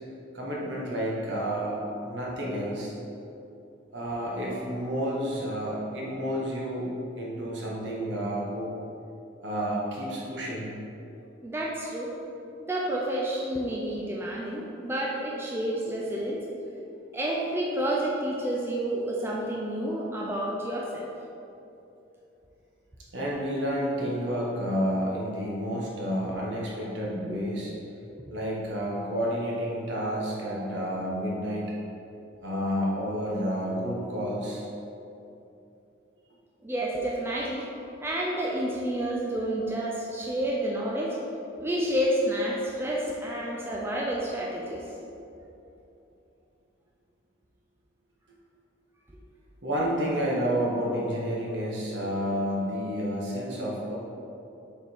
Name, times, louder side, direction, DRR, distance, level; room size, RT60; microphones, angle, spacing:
voice 1, 0.3-2.9 3.9-6.9 7.1-8.7 9.4-10.7 23.1-27.7 28.3-31.8 32.4-34.6 49.6-54.0, equal, 65° right, -4 dB, 1.3 m, -30 dB
voice 2, 11.4-12.1 12.7-16.4 17.1-21.1 27.3-27.4 36.6-37.7 38.0-41.2 41.6-44.8, right 1 dB, 10° right, -4 dB, 0.5 m, -29 dB
6.6 x 3.6 x 4.6 m, 2.8 s
head